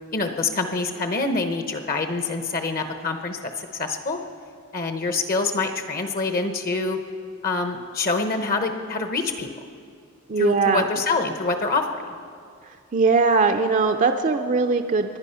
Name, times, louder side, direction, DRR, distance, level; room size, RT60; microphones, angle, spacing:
voice 1, 0.1-4.2 4.7-7.0 7.4-9.5 10.4-12.0, left 3 dB, 45° left, 6 dB, 0.9 m, -26 dB
voice 2, 10.3-10.9 12.9-15.2, right 4 dB, 35° right, 5 dB, 0.5 m, -20 dB
24.0 x 10.5 x 5.6 m, 2.3 s
head